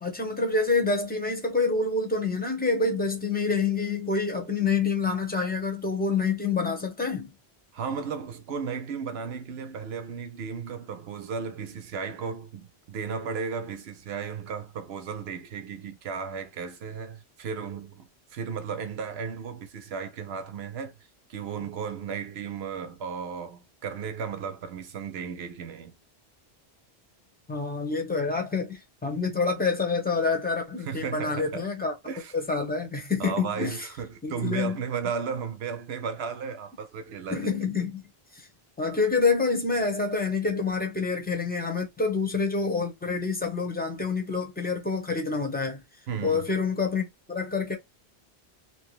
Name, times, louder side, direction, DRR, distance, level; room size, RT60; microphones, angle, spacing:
voice 1, 0.0-7.3 27.5-31.9 32.3-33.8 34.2-34.8 37.3-38.0 38.3-38.4 38.8-45.8 46.2-47.8, left 4 dB, 10° left, 0.8 m, -27 dB
voice 2, 7.7-20.9 21.3-26.0 30.8-31.7 32.0-32.3 33.2-37.5 46.1-46.5, right 6 dB, 75° right, 0.9 m, -35 dB
3.0 x 2.2 x 3.0 m
omnidirectional pair, 1.1 m